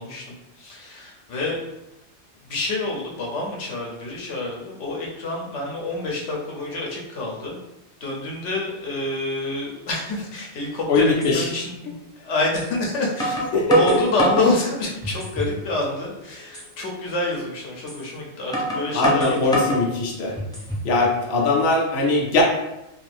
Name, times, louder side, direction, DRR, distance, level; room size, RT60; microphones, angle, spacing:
voice 1, 0.0-1.6 2.5-7.6 8.0-19.8 20.1-20.2, left 2 dB, 80° left, -2 dB, 1.1 m, -27 dB
sound 1, 10.6-10.7 11.2-11.3 12.5-12.7 13.2-14.5 15.0-15.6 16.0-16.1 16.5-16.7 17.9-18.0 18.5-19.8 20.4-20.9, left 1 dB, 5° left, 0.4 m, -25 dB
voice 2, 10.9-11.5 13.5-14.0 18.9-20.4 20.8-22.4, left 2 dB, 60° left, -1 dB, 0.7 m, -20 dB
2.6 x 2.5 x 3.3 m, 0.92 s
omnidirectional pair, 1.2 m